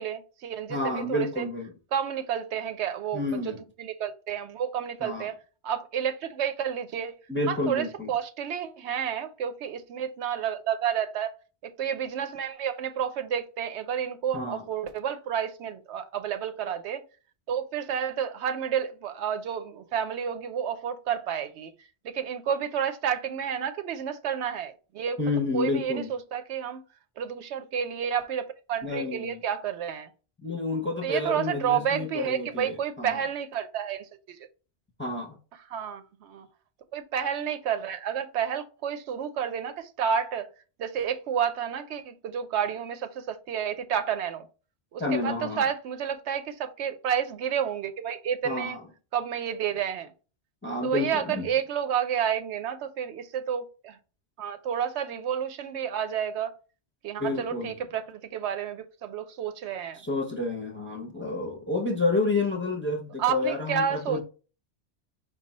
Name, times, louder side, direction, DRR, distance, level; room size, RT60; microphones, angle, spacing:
voice 1, 0.0-1.5 1.9-5.3 5.6-7.2 7.5-11.3 11.6-17.0 17.5-21.7 22.0-25.2 25.5-26.8 27.2-30.1 31.0-34.4 35.7-36.5 36.9-40.5 40.8-44.5 44.9-48.8 49.1-50.1 50.8-54.0 54.4-56.5 57.0-60.0 63.2-64.2, right 8 dB, 80° right, 0.9 m, -30 dB
voice 2, 0.7-1.7 3.1-3.6 5.0-5.3 7.3-8.1 14.3-14.7 25.2-26.1 28.8-29.4 30.4-33.2 35.0-35.4 45.0-45.6 48.4-48.8 50.6-51.5 57.2-57.7 59.9-64.2, left 3 dB, 15° left, 0.5 m, -30 dB
4.8 x 2.3 x 4.1 m
omnidirectional pair, 1.2 m